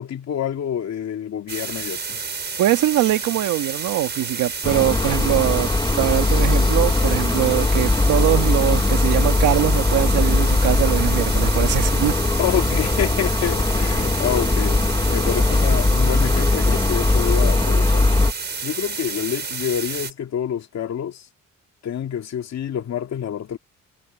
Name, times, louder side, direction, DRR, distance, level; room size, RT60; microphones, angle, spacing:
voice 1, 0.0-2.2 12.4-18.1 18.6-21.3 21.8-23.6, left 9 dB, 60° left, 2.2 m, -27 dB
sound 1, 1.5-20.1, right 5 dB, 35° right, 5.1 m, -30 dB
voice 2, 2.6-12.1, right 14 dB, 85° right, 1.8 m, -22 dB
sound 2, 4.6-18.3, left 2 dB, 15° left, 1.5 m, -20 dB
cardioid pair, 90°, 30 cm